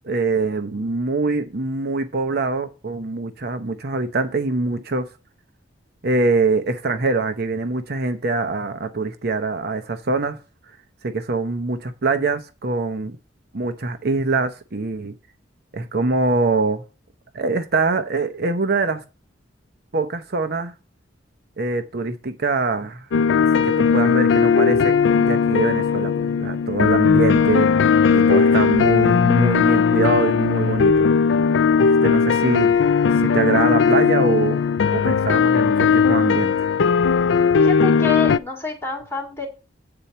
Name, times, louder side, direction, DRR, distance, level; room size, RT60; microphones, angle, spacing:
voice 1, 0.0-5.1 6.0-10.4 11.0-13.2 13.5-15.1 15.7-16.8 17.3-19.0 19.9-20.7 21.6-23.1 23.4-26.1 26.4-31.1 31.8-32.7 33.2-34.6 34.9-36.7, right 3 dB, 60° right, 0.8 m, -24 dB
sound 1, 23.1-38.4, left 6 dB, 75° left, 0.4 m, -17 dB
voice 2, 37.6-39.5, left 3 dB, 15° left, 2.8 m, -27 dB
8.8 x 4.3 x 6.7 m
head